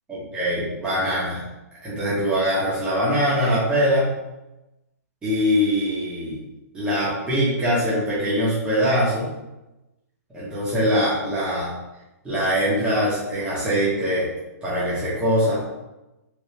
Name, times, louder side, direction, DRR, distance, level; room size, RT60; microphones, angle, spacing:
voice 1, 0.1-1.4 1.8-4.1 5.2-6.4 6.7-9.3 10.3-11.7 12.2-14.3 14.6-15.6, equal, 10° right, -9 dB, 1.0 m, -22 dB
3.3 x 2.8 x 2.8 m, 0.99 s
hypercardioid pair, 145°, 9 cm